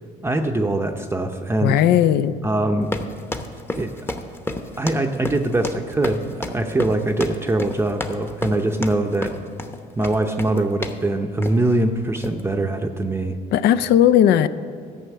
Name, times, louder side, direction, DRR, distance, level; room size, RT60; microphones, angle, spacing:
voice 1, 0.2-1.8 2.4-2.9 3.8-4.2 4.8-9.4 10.0-13.4, right 2 dB, 15° right, 4 dB, 0.6 m, -22 dB
voice 2, 1.6-2.4 13.5-14.5, left 10 dB, 75° left, 14 dB, 0.5 m, -16 dB
sound 1, 2.8-11.1 11.4-11.7 12.2-12.4, left 1 dB, 15° left, 0.9 m, -31 dB
13.0 x 5.6 x 8.3 m, 2.2 s
cardioid pair, 110°, 17 cm